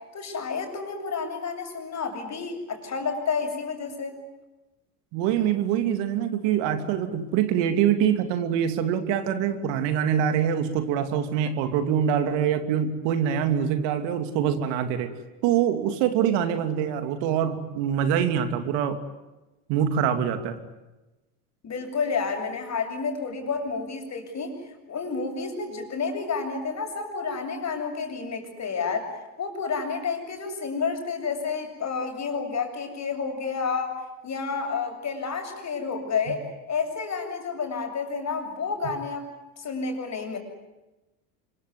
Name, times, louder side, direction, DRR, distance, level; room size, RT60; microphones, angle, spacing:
voice 1, 0.1-4.2 21.6-29.1 29.4-34.0 34.2-39.3 39.6-40.4, left 5 dB, 35° left, 4 dB, 7.7 m, -30 dB
voice 2, 5.1-15.1 15.4-19.0 19.7-20.6 36.3-36.4, right 9 dB, 65° right, 8 dB, 3.0 m, -24 dB
26.0 x 23.5 x 9.6 m, 1.1 s
supercardioid pair, 95°, 45 cm